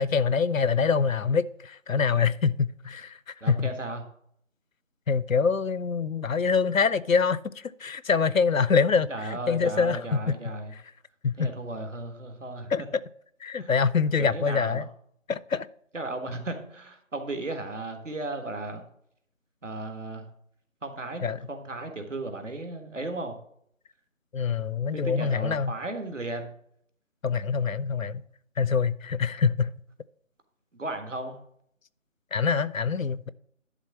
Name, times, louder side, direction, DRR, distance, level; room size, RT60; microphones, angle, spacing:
voice 1, 0.0-3.7 5.1-10.3 10.7-10.8 11.2-11.5 12.7-12.8 13.4-14.9 15.3-15.7 21.2-21.4 24.3-25.8 27.2-28.2 28.6-29.7 32.3-33.3, left 5 dB, 75° left, 0.6 m, -25 dB
voice 2, 3.4-4.0 9.1-10.7 11.4-12.7 13.6-13.7 14.2-14.9 15.9-18.8 19.6-20.2 20.8-23.4 24.9-26.5 30.7-31.3, right 2 dB, 65° right, 1.7 m, -35 dB
11.0 x 3.7 x 7.2 m
figure-of-eight pair, 165°, 40 cm